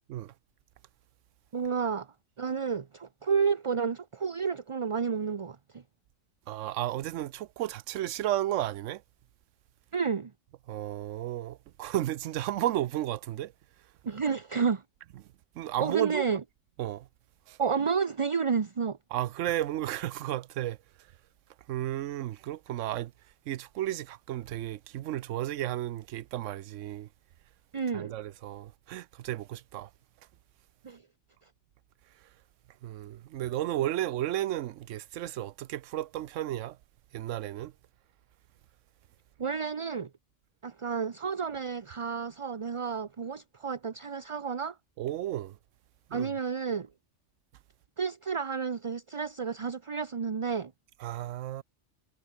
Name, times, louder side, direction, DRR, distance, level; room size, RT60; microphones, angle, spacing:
voice 1, 1.5-2.1 2.4-5.8 9.9-10.3 14.1-14.8 15.8-16.4 17.6-19.0 27.7-28.2 30.8-31.0 39.4-40.1 40.6-44.8 46.1-46.9 48.0-50.7, right 6 dB, 30° right, 0.6 m, -31 dB
voice 2, 6.5-9.0 10.7-13.5 15.6-16.3 16.8-17.1 17.5-17.6 19.1-20.8 21.7-23.1 23.5-27.1 27.9-29.9 32.8-36.8 37.1-37.7 45.0-45.5 46.1-46.3 51.0-51.6, right 13 dB, 80° right, 0.9 m, -33 dB
omnidirectional pair, 1.3 m